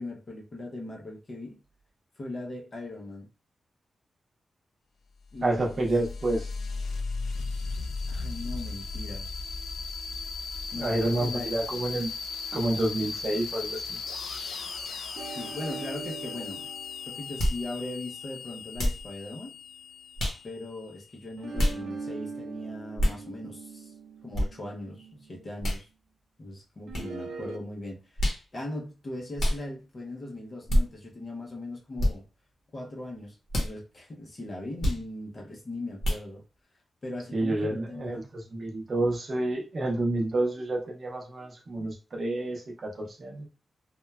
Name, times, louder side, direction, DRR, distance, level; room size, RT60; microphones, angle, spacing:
voice 1, 0.0-1.6 2.2-3.3 5.3-5.7 8.1-9.3 10.7-11.6 15.3-16.7 17.1-19.6 20.4-23.9 24.2-25.9 26.4-28.2 28.5-32.2 32.7-36.4 37.0-38.3, left 2 dB, 35° left, 0.6 m, -39 dB
sound 1, 5.3-21.6, left 4 dB, 85° left, 0.3 m, -37 dB
voice 2, 5.4-6.5 10.8-12.1 12.5-14.0 37.3-43.5, right 1 dB, 40° right, 0.6 m, -29 dB
sound 2, 15.2-19.7 21.4-25.5 26.9-27.6, right 4 dB, 80° right, 0.4 m, -42 dB
sound 3, 17.4-17.6 18.8-19.1 20.2-20.4 21.6-21.8 23.0-23.2 24.3-24.5 25.6-25.8 26.9-27.1 28.2-28.4 29.4-29.6 30.7-30.8 32.0-32.1 33.5-33.7 34.8-35.0 36.0-36.2, equal, 70° left, 0.9 m, -26 dB
3.1 x 2.1 x 2.2 m
wide cardioid pair, 165°, 0 cm